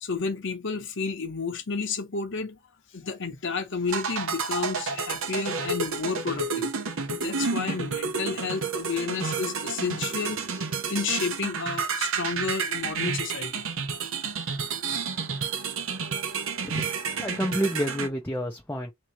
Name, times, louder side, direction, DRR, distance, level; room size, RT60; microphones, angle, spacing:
voice 1, 0.0-2.6 2.9-6.7 7.1-13.6, left 4 dB, 60° left, 0.9 m, -31 dB
sound 1, 3.9-18.1, right 5 dB, 65° right, 0.8 m, -30 dB
voice 2, 17.1-18.9, equal, 10° left, 0.6 m, -29 dB
3.7 x 3.0 x 3.0 m
head